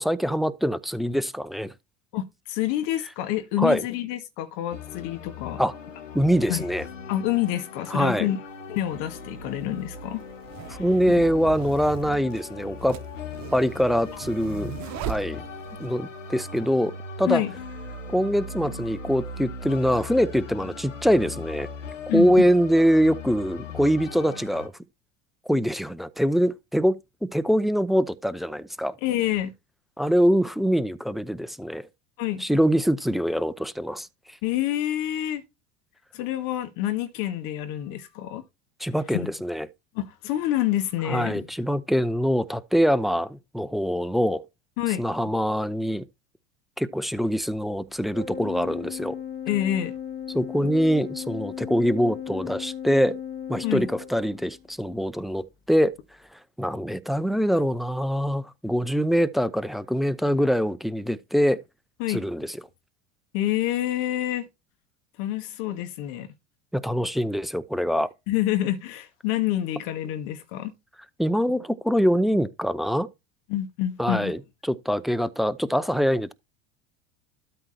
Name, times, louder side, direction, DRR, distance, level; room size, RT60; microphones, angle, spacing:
voice 1, 0.0-1.7 3.6-3.9 5.6-5.7 6.1-6.8 7.9-8.3 10.7-13.0 13.5-14.7 15.0-15.4 15.8-16.9 17.2-17.4 18.1-21.7 22.1-24.7 25.5-27.0 27.3-28.9 30.0-31.9 32.4-34.1 38.8-39.7 41.0-44.4 45.0-46.0 46.8-49.2 50.3-53.2 53.5-56.0 56.3-61.6 62.1-62.6 66.7-68.1 71.2-73.1 74.0-74.4 74.6-76.3, equal, ahead, 0.7 m, -24 dB
voice 2, 2.1-5.6 6.5-6.6 7.1-8.4 8.7-10.2 10.7-11.2 17.3-17.5 22.1-22.3 29.0-29.5 32.2-32.4 34.4-35.4 36.1-38.4 39.1-39.3 39.9-41.5 44.8-45.0 49.5-49.9 53.6-53.8 62.0-62.2 63.3-64.5 65.2-66.3 68.3-70.7 73.5-74.4, left 13 dB, 60° left, 2.2 m, -27 dB
sound 1, 4.7-24.7, left 4 dB, 90° left, 1.8 m, -39 dB
sound 2, 8.5-8.6 9.5-15.9, right 11 dB, 50° right, 1.2 m, -38 dB
Organ, 48.1-54.7, left 9 dB, 25° left, 1.1 m, -36 dB
12.5 x 4.5 x 4.3 m
hypercardioid pair, 80°, 37 cm